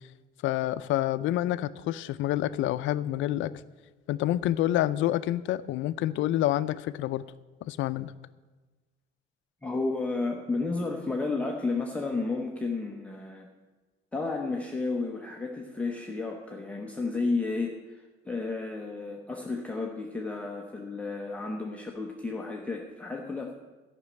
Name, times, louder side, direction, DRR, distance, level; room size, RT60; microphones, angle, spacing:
voice 1, 0.4-3.5 4.1-7.2 7.7-8.1, left 14 dB, 70° left, 15 dB, 0.5 m, -28 dB
voice 2, 9.6-13.5 14.1-23.5, left 3 dB, 5° left, 0 dB, 0.8 m, -32 dB
13.0 x 6.1 x 8.9 m, 1.3 s
cardioid pair, 170°, 21 cm